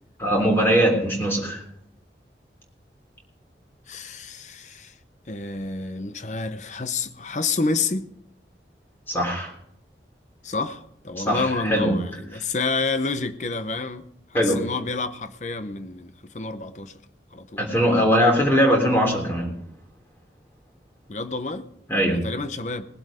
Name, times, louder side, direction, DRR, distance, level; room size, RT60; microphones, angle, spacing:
voice 1, 0.2-1.6 9.1-9.5 11.2-11.9 14.3-14.6 17.6-19.5 21.9-22.2, equal, 15° left, 3.4 m, -21 dB
voice 2, 3.9-4.9 5.3-8.1 10.4-16.9 17.3-17.6 21.1-21.7 22.1-22.9, left 3 dB, 40° left, 0.8 m, -29 dB
20.0 x 7.9 x 5.1 m
head